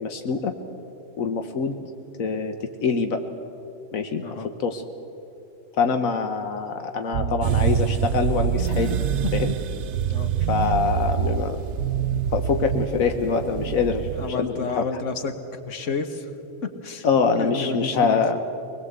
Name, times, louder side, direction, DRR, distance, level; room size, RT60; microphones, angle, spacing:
voice 1, 0.0-0.5 1.2-1.8 2.2-3.2 3.9-4.2 4.6-4.8 5.8-9.0 9.3-9.5 10.5-11.7 12.3-14.8 17.0-18.4, left 5 dB, 85° left, 6 dB, 1.5 m, -24 dB
sound 1, 7.1-12.9, right 9 dB, 80° right, 1.2 m, -27 dB
sound 2, 7.4-14.3, right 7 dB, 65° right, 0.9 m, -28 dB
voice 2, 14.1-16.3 16.6-17.1 17.4-18.2, left 4 dB, 65° left, 8 dB, 1.7 m, -30 dB
23.0 x 20.0 x 8.1 m, 2.8 s
omnidirectional pair, 1.4 m